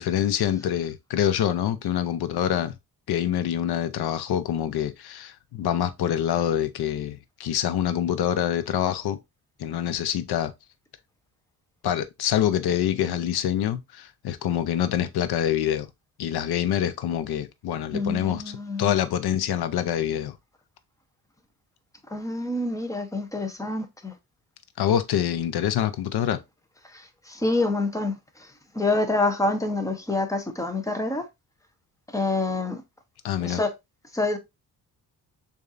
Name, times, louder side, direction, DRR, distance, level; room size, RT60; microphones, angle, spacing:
voice 1, 0.0-2.7 3.1-9.2 9.6-10.5 11.8-15.9 16.2-20.4 24.8-26.4 33.2-33.6, left 10 dB, 85° left, 0.7 m, -26 dB
voice 2, 17.9-18.9 22.1-24.1 26.9-28.1 28.7-31.2 32.1-32.8 33.4-33.7 34.1-34.4, left 2 dB, 10° left, 0.8 m, -27 dB
6.7 x 2.6 x 2.5 m
cardioid pair, 120°, 38 cm